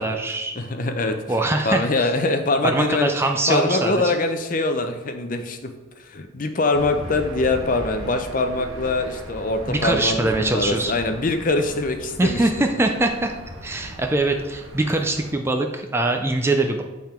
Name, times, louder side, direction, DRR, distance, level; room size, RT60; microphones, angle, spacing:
voice 1, 0.0-0.6 1.3-2.1 2.6-4.1 9.7-11.0 12.2-13.3 13.6-16.8, right 2 dB, 10° right, 4 dB, 0.4 m, -22 dB
voice 2, 0.6-1.2 1.6-3.1 3.5-5.7 6.0-12.4, left 2 dB, 40° left, 7 dB, 0.6 m, -23 dB
Aircraft / Engine, 6.7-15.3, equal, 90° right, 1.2 m, -37 dB
7.8 x 3.6 x 4.3 m, 1.2 s
head